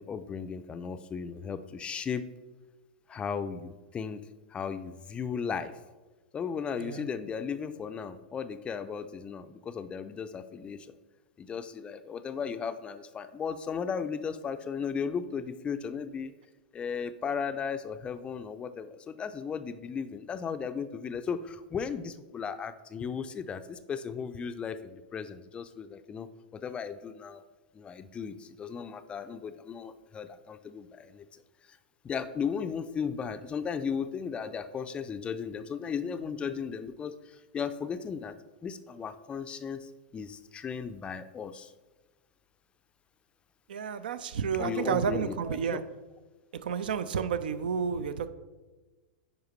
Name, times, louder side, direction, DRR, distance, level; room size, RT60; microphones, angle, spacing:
voice 1, 0.0-2.3 3.1-5.8 6.3-10.9 11.4-16.4 16.7-27.4 27.7-31.2 31.7-31.8 32.0-38.4 38.6-41.7 44.6-45.8, left 6 dB, 20° left, 11 dB, 0.4 m, -36 dB
voice 2, 6.8-7.1 43.7-45.8 46.6-48.3, right 7 dB, 70° right, 12 dB, 0.5 m, -31 dB
9.4 x 4.9 x 3.1 m, 1.2 s
hypercardioid pair, 105°, 5 cm